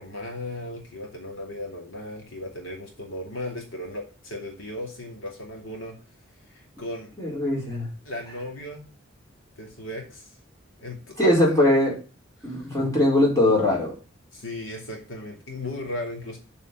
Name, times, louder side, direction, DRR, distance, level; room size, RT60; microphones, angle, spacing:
voice 1, 0.0-6.0 6.5-7.1 8.0-8.9 9.6-10.4 10.8-11.3 12.4-12.7 14.3-16.4, left 1 dB, 85° left, 1 dB, 3.2 m, -36 dB
voice 2, 7.2-7.9 11.2-11.9 12.4-13.9, left 1 dB, 15° left, -3 dB, 4.4 m, -21 dB
7.4 x 5.5 x 7.6 m, 0.33 s
head